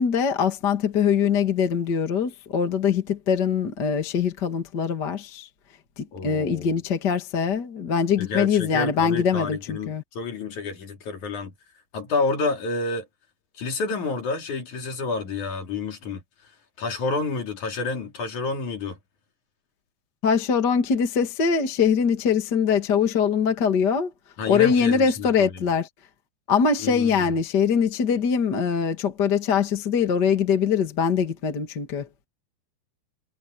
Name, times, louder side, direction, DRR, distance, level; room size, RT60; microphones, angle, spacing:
voice 1, 0.0-5.5 6.0-10.0 20.2-24.1 24.5-25.9 26.5-32.1, left 6 dB, 35° left, 2.1 m, -23 dB
voice 2, 6.1-6.7 8.2-11.5 11.9-13.1 13.6-16.2 16.8-19.0 24.4-25.6 26.8-27.1, left 3 dB, 55° left, 4.2 m, -29 dB
omnidirectional pair, 4.2 m